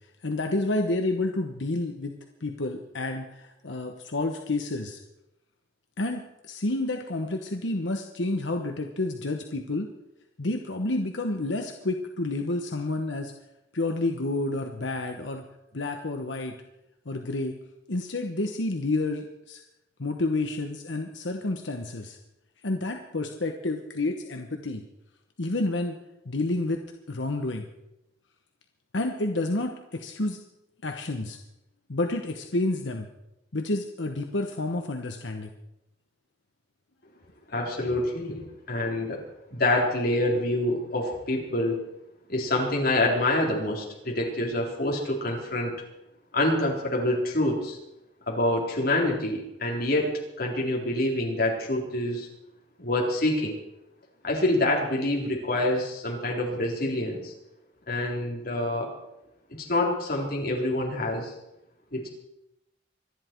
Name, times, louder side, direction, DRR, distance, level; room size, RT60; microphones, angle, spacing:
voice 1, 0.2-5.0 6.0-9.9 10.4-13.3 13.7-15.5 15.7-16.6 17.0-17.5 17.9-19.6 20.0-22.2 22.6-24.8 25.4-26.0 26.2-26.8 27.1-27.7 28.9-30.4 30.8-31.4 31.9-33.1 33.5-35.5, left 2 dB, 90° left, 4 dB, 1.1 m, -29 dB
voice 2, 37.5-39.2 39.5-41.8 42.3-45.7 46.3-47.8 48.3-52.3 52.8-53.5 54.2-57.3 57.9-58.9 59.5-61.3 61.9-62.1, left 1 dB, 55° left, -1 dB, 3.8 m, -26 dB
25.0 x 10.5 x 4.6 m, 0.88 s
head